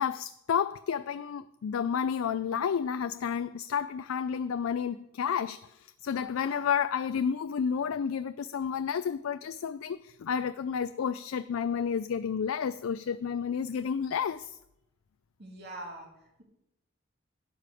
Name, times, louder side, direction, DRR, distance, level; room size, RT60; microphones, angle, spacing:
voice 1, 0.0-5.6 6.0-14.5, left 7 dB, 85° left, 0.4 m, -31 dB
voice 2, 15.4-16.4, right 1 dB, 50° right, 2.9 m, -44 dB
12.0 x 5.0 x 8.3 m
head